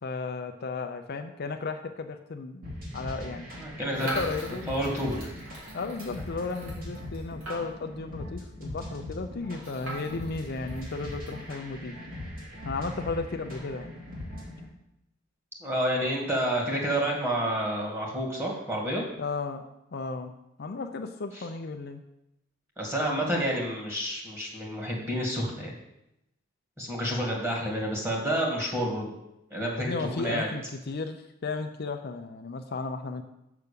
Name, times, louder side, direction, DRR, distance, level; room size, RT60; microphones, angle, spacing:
voice 1, 0.0-2.7 2.9-3.5 4.0-4.7 5.7-12.0 12.6-13.9 19.2-19.7 19.9-20.3 20.6-22.0 29.8-33.2, left 4 dB, 50° left, 6 dB, 0.5 m, -34 dB
sound 1, 2.6-14.6, left 1 dB, 45° right, 3.0 m, -40 dB
voice 2, 3.6-4.2 4.7-5.2 15.6-19.1 22.8-25.7 26.8-29.2 29.5-30.5, equal, 10° right, -2 dB, 2.1 m, -29 dB
sound 2, 3.9-8.0 8.4-8.5 8.7-8.8 9.6-11.4, right 1 dB, 75° right, 3.3 m, -42 dB
6.7 x 5.9 x 6.8 m, 0.87 s
head